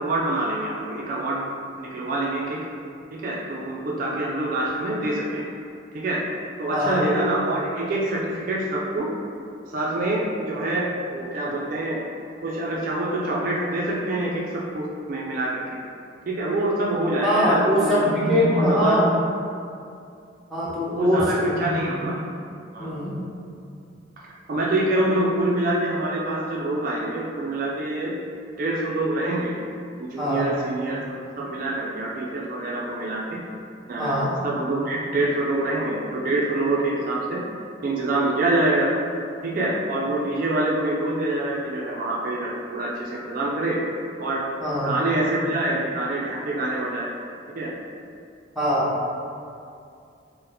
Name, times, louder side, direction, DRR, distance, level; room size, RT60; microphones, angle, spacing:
voice 1, 0.0-1.5 1.8-2.6 3.2-5.4 5.9-6.2 6.6-9.1 9.7-12.0 12.4-14.4 14.7-15.6 16.3-19.1 20.9-22.2 22.7-22.9 24.5-28.1 28.6-29.5 30.0-33.4 33.9-37.4 37.8-38.9 39.4-43.8 44.2-44.4 44.8-47.1 47.6-47.7, right 1 dB, 45° right, -4 dB, 0.3 m, -25 dB
voice 2, 6.7-7.0 17.2-19.1 20.5-21.2 22.8-23.2 30.2-30.4 34.0-34.3 44.6-44.9 48.6-48.9, equal, ahead, -9 dB, 0.5 m, -22 dB
2.7 x 2.0 x 3.8 m, 2.5 s
head